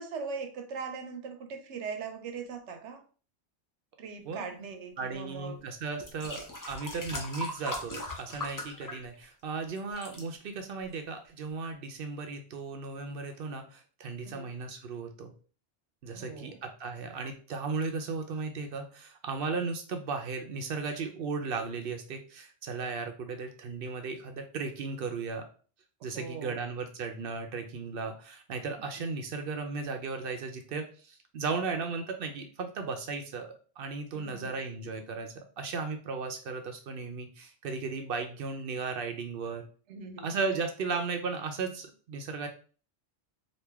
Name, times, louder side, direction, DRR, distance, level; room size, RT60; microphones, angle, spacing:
voice 1, 0.0-3.0 4.0-5.6 14.2-14.5 16.1-16.6 26.1-26.5 34.1-34.6 39.9-40.3, right 5 dB, 85° right, 6 dB, 1.0 m, -40 dB
voice 2, 4.2-4.6 5.0-15.3 16.0-25.5 26.0-39.6 40.2-42.5, right 4 dB, 60° right, 5 dB, 0.7 m, -36 dB
sound 1, 5.4-5.5 6.0-9.5 9.8-10.2 10.9-11.0, left 1 dB, 25° left, 0.5 m, -39 dB
3.1 x 2.6 x 3.4 m, 0.39 s
omnidirectional pair, 1.2 m